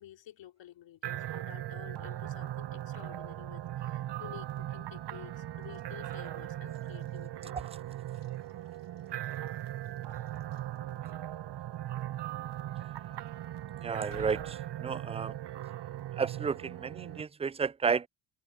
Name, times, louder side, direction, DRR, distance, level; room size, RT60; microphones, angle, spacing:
voice 1, 0.0-7.5, left 12 dB, 65° left, 4.0 m, -51 dB
sound 1, 1.0-17.2, right 13 dB, 60° right, 1.7 m, -39 dB
Walk footsteps / Slam, 5.6-11.4 11.9-12.1 12.5-15.5, left 6 dB, 45° left, 4.2 m, -59 dB
voice 2, 13.8-15.4 16.2-18.1, right 6 dB, 15° right, 0.4 m, -32 dB
hypercardioid pair, 50°, 47 cm